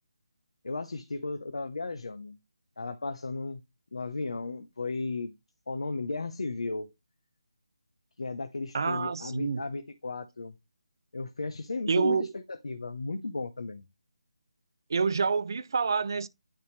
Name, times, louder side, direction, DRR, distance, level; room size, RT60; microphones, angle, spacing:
voice 1, 0.6-2.4 2.8-3.6 3.9-5.3 5.7-6.9 8.2-10.5 11.1-13.8, left 3 dB, 75° left, 0.9 m, -35 dB
voice 2, 8.7-9.6 11.9-12.3 14.9-16.3, right 5 dB, 40° right, 0.4 m, -27 dB
10.0 x 3.5 x 3.3 m
hypercardioid pair, 175°, 3 cm